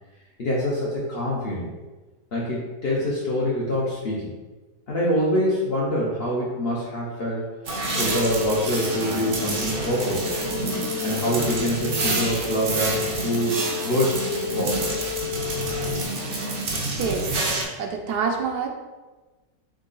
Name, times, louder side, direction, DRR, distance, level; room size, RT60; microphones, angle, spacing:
voice 1, 0.4-1.7 2.3-4.3 4.9-7.4 8.0-10.3 11.0-13.6 13.8-14.2 14.5-15.0, equal, 50° left, -5 dB, 0.7 m, -25 dB
sound 1, 7.6-17.6, right 2 dB, 50° right, 0.7 m, -28 dB
sound 2, 7.9-16.0, left 10 dB, 80° left, 1.2 m, -33 dB
voice 2, 16.9-17.3 17.8-18.7, right 5 dB, 75° right, 2 dB, 1.2 m, -26 dB
3.8 x 3.1 x 3.8 m, 1.2 s
omnidirectional pair, 1.8 m